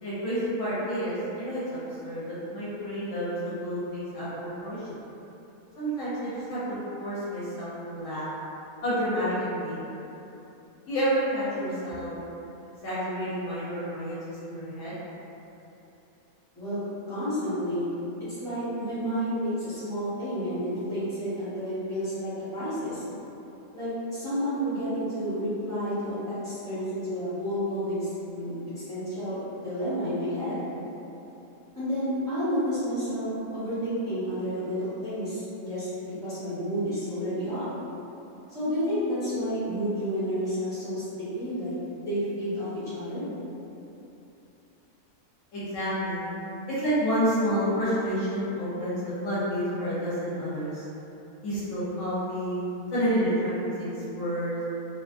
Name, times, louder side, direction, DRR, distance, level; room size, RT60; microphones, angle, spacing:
voice 1, 0.0-5.0 5.8-6.6 7.0-8.3 8.8-9.9 10.9-12.1 12.8-15.0 45.5-46.2 46.7-50.8 51.4-52.6 52.9-54.6, equal, 65° left, -11 dB, 1.0 m, -29 dB
voice 2, 17.1-17.9 18.4-23.0 23.7-30.6 31.8-37.7 38.5-41.1 41.3-41.7 42.0-43.2, equal, 5° left, -14 dB, 0.9 m, -30 dB
2.6 x 2.3 x 2.4 m, 2.9 s
omnidirectional pair, 1.5 m